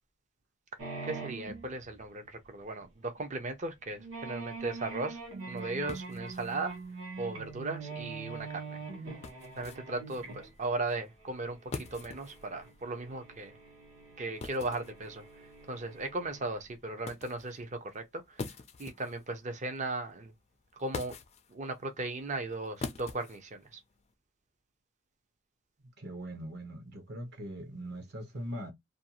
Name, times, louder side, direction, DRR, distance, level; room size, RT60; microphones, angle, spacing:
sound 1, 0.8-2.4 2.8-2.9 3.2-3.3 3.9-16.7, right 4 dB, 75° right, 1.1 m, -44 dB
voice 1, 1.0-5.2 5.5-6.8 7.2-8.8 9.6-13.5 14.2-15.2 15.7-18.5 18.8-20.3 20.8-21.2 21.5-23.8, right 2 dB, 35° right, 0.5 m, -37 dB
sound 2, 4.5-24.1, left 3 dB, 30° left, 0.3 m, -48 dB
voice 2, 26.0-28.7, right 1 dB, 50° right, 0.9 m, -41 dB
2.5 x 2.3 x 2.8 m
head